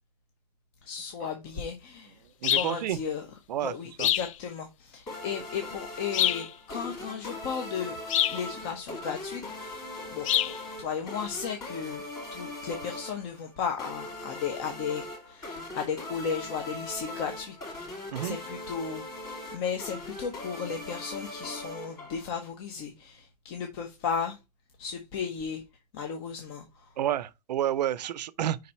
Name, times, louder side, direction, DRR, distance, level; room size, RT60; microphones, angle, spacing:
voice 1, 0.8-2.2 2.5-3.2 3.6-7.9 8.3-17.9 18.2-19.1 19.5-24.4 24.8-25.6 25.9-26.9, left 6 dB, 35° left, 0.9 m, -35 dB
sound 1, 2.4-2.8 4.0-4.3 6.1-6.5 8.1-8.4 10.2-10.6, left 12 dB, 55° left, 0.4 m, -25 dB
voice 2, 2.4-3.0 3.5-4.1 18.1-18.4 27.0-28.6, right 11 dB, 90° right, 0.6 m, -30 dB
sound 2, 5.1-22.5, left 1 dB, 15° left, 2.7 m, -40 dB
5.4 x 4.1 x 4.2 m
supercardioid pair, 165°, 21 cm